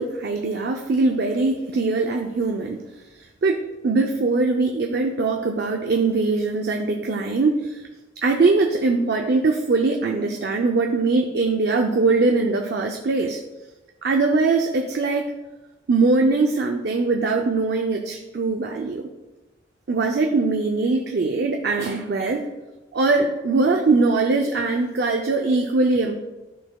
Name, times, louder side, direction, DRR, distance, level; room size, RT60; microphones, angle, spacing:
voice 1, 0.0-2.8 3.4-7.8 8.2-13.4 14.0-15.3 15.9-19.1 19.9-22.4 22.9-26.2, right 3 dB, 60° right, 2 dB, 0.5 m, -21 dB
12.5 x 4.2 x 2.3 m, 1.1 s
head